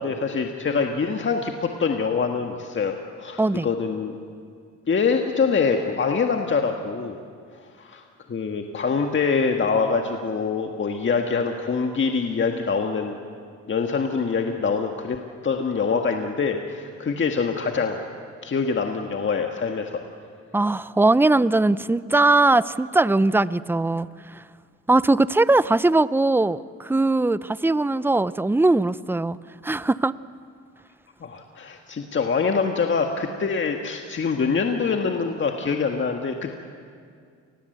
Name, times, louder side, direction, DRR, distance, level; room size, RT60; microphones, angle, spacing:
voice 1, 0.0-4.1 4.9-7.1 7.8-8.0 8.3-13.1 13.7-15.2 15.4-18.0 18.4-20.0 31.2-36.6, left 5 dB, 40° left, 4 dB, 1.8 m, -24 dB
voice 2, 3.4-3.7 20.5-24.4 24.9-29.4 29.6-30.1, right 2 dB, 5° right, 17 dB, 0.6 m, -20 dB
29.5 x 21.5 x 8.1 m, 2.3 s
cardioid pair, 90°, 30 cm